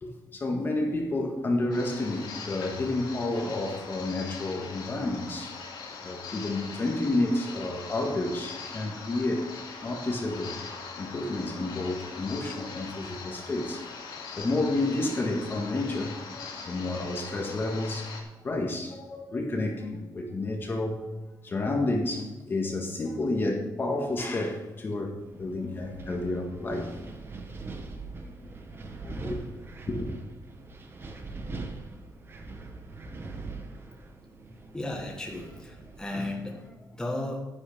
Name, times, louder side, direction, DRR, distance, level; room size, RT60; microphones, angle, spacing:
voice 1, 0.0-5.6 6.0-9.5 9.8-10.6 11.0-13.8 14.4-18.1 18.4-21.0 21.4-27.0 28.2-28.3 29.0-29.4 29.9-30.1, left 2 dB, 30° left, 1 dB, 1.7 m, -30 dB
sound 1, 1.7-18.2, left 5 dB, 85° left, 2.7 m, -41 dB
Wind, 25.2-36.7, right 3 dB, 30° right, 1.2 m, -42 dB
voice 2, 34.7-37.4, left 1 dB, 10° left, -1 dB, 1.6 m, -35 dB
11.0 x 10.5 x 3.6 m, 1.1 s
wide cardioid pair, 160°, 8 cm